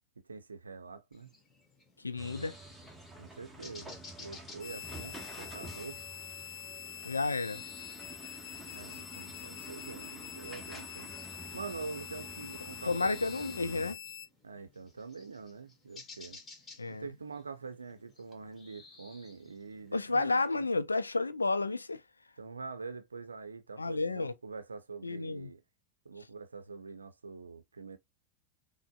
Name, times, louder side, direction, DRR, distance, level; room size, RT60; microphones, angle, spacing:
voice 1, 0.2-1.3 3.2-6.0 8.6-11.2 11.5-13.4 14.4-16.4 16.9-20.6 22.4-25.6 26.0-28.0, right 4 dB, 80° right, 0.6 m, -45 dB
sound 1, 1.1-20.6, left 3 dB, 20° left, 1.5 m, -57 dB
voice 2, 2.0-2.6 7.0-7.6 12.4-12.5 12.8-14.0 16.8-17.1 19.9-22.0 23.8-24.3 25.0-25.5, left 3 dB, 85° left, 0.4 m, -31 dB
sound 2, 2.2-13.9, right 2 dB, 5° right, 1.0 m, -49 dB
sound 3, 4.6-14.3, left 10 dB, 40° left, 0.7 m, -45 dB
5.9 x 2.1 x 2.3 m
figure-of-eight pair, 85°, 0 cm